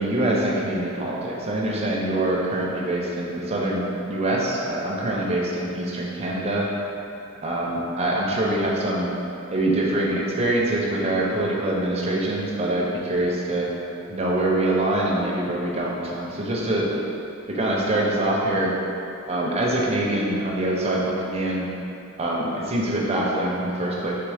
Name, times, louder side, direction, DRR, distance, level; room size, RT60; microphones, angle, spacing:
voice 1, 0.0-6.7 7.4-9.1 9.5-13.7 14.1-16.9 17.5-18.7 19.3-21.6 22.2-24.1, right 1 dB, 30° right, -3 dB, 0.5 m, -24 dB
3.5 x 3.4 x 3.3 m, 2.8 s
head